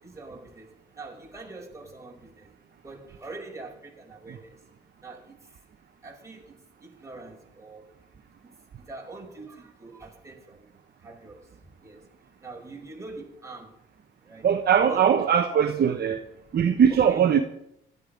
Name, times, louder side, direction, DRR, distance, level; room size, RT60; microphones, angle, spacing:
voice 1, 0.0-2.5 2.8-4.6 5.0-5.6 6.0-7.9 8.4-10.7 11.0-12.1 12.4-13.7 14.2-14.5 14.8-15.2 16.9-17.3, right 3 dB, 15° right, -1 dB, 5.4 m, -44 dB
voice 2, 14.4-16.2 16.5-17.4, right 8 dB, 55° right, 5 dB, 1.2 m, -20 dB
16.5 x 13.0 x 5.2 m, 0.77 s
cardioid pair, 90°, 20 cm